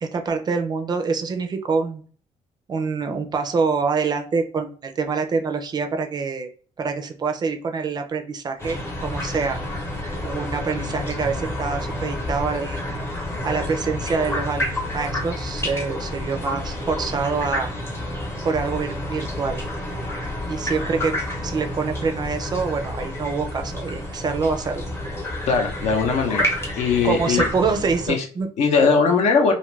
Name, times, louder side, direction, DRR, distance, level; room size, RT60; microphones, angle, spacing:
voice 1, 0.0-2.0 2.7-6.5 6.8-9.6 10.2-12.8 13.4-14.7 14.9-17.7 18.4-19.6 20.2-21.1 21.4-24.8 27.0-28.5, right 4 dB, 35° right, 6 dB, 0.4 m, -25 dB
sound 1, 8.6-28.1, left 1 dB, 20° left, 0.8 m, -29 dB
voice 2, 25.5-26.4 26.8-27.4 28.1-28.2 28.6-29.5, left 5 dB, 65° left, 4 dB, 0.7 m, -19 dB
2.6 x 2.4 x 3.1 m, 0.43 s
cardioid pair, 140°, 13 cm